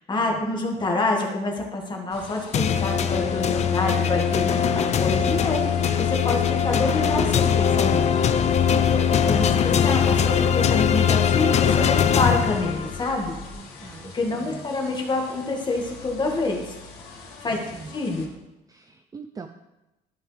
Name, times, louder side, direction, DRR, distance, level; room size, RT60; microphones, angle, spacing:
voice 1, 0.0-8.1 8.5-13.4 14.1-16.7 17.4-17.6 17.9-18.3, left 2 dB, 25° left, 0 dB, 1.9 m, -27 dB
sound 1, 2.1-18.3, left 1 dB, 70° left, 2.4 m, -43 dB
sound 2, 2.5-13.1, left 8 dB, 40° left, 0.5 m, -21 dB
sound 3, 5.2-13.5, left 1 dB, 5° left, 1.9 m, -43 dB
voice 2, 9.2-9.6 13.5-14.1 14.4-14.6 17.5-17.9 18.7-19.5, right 5 dB, 20° right, 7 dB, 0.5 m, -42 dB
13.0 x 5.5 x 3.4 m, 0.97 s
cardioid pair, 110°, 17 cm